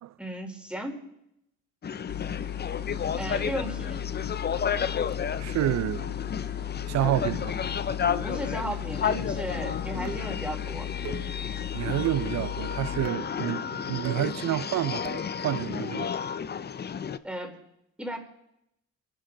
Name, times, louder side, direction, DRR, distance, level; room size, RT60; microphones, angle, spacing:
voice 1, 0.2-1.0 3.2-4.1 8.2-10.9 17.2-17.6 18.0-18.2, right 1 dB, 5° right, 4.0 m, -35 dB
sound 1, 1.8-17.2, left 7 dB, 35° left, 0.6 m, -32 dB
sound 2, 2.1-13.1, left 11 dB, 75° left, 0.9 m, -36 dB
voice 2, 5.4-6.2 6.9-7.6 11.7-15.1 15.4-16.1, right 14 dB, 65° right, 0.5 m, -29 dB
sound 3, 8.1-8.5 9.0-9.4 10.0-10.4 11.0-11.4 12.1-12.4 13.0-13.3 14.0-14.3 15.0-15.3, right 9 dB, 90° right, 1.1 m, -40 dB
25.5 x 12.0 x 3.9 m
cardioid pair, 90°, 30 cm